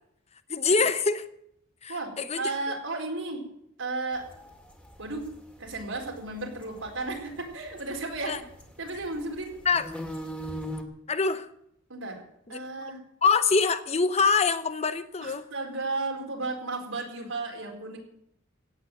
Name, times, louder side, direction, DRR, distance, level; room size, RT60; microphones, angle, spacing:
voice 1, 0.5-1.3 1.8-2.4 8.3-8.4 9.6-9.9 11.1-11.5 12.5-12.6 13.2-15.5, left 4 dB, 35° left, 12 dB, 0.8 m, -24 dB
voice 2, 1.9-3.4 3.8-4.2 5.0-5.3 5.6-8.4 8.8-9.6 11.9-12.2 12.5-13.0 15.2-18.0, right 3 dB, 85° right, 1 dB, 4.3 m, -34 dB
sound 1, 4.1-10.8, equal, 5° left, 2.2 m, -41 dB
16.0 x 8.4 x 9.0 m, 0.74 s
head